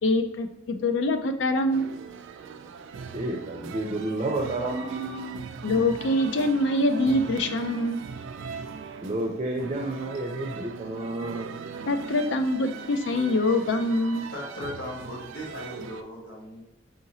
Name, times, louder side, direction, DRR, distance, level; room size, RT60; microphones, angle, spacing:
voice 1, 0.0-1.9 5.6-8.0 11.9-14.3, left 1 dB, 70° left, 8 dB, 0.4 m, -24 dB
sound 1, 1.7-16.0, right 5 dB, 85° right, 0.3 m, -40 dB
voice 2, 3.1-5.3 9.0-11.5, right 2 dB, 30° right, 0 dB, 0.5 m, -30 dB
voice 3, 14.3-16.6, left 1 dB, 85° left, -3 dB, 1.2 m, -37 dB
4.7 x 2.9 x 2.7 m, 0.81 s
head